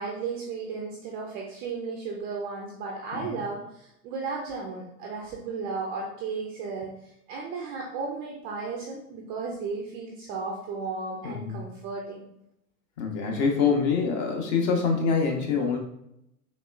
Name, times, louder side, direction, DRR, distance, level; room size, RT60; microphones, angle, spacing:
voice 1, 0.0-6.9 7.3-12.2, right 4 dB, 20° right, -1 dB, 0.3 m, -34 dB
voice 2, 3.1-3.4 11.2-11.6 13.0-15.8, left 5 dB, 45° left, 2 dB, 1.0 m, -25 dB
4.1 x 3.1 x 2.4 m, 0.78 s
hypercardioid pair, 95°, 47 cm